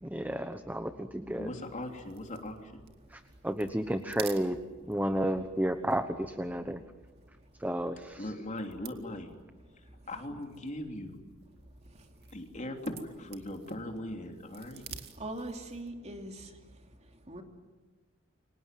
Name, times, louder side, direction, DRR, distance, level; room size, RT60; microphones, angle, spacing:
voice 1, 0.0-1.5 3.1-4.6 4.9-6.8 7.6-8.2, right 1 dB, 10° right, 9 dB, 1.1 m, -32 dB
voice 2, 1.4-2.8 8.2-9.4 9.7-11.2 12.3-14.8, left 1 dB, 35° left, 4 dB, 3.3 m, -40 dB
sound 1, 1.6-16.0, right 10 dB, 55° right, 2.2 m, -53 dB
voice 3, 15.2-16.4 17.3-17.4, right 1 dB, 35° right, 4 dB, 2.9 m, -40 dB
29.5 x 25.0 x 7.7 m, 1.3 s
head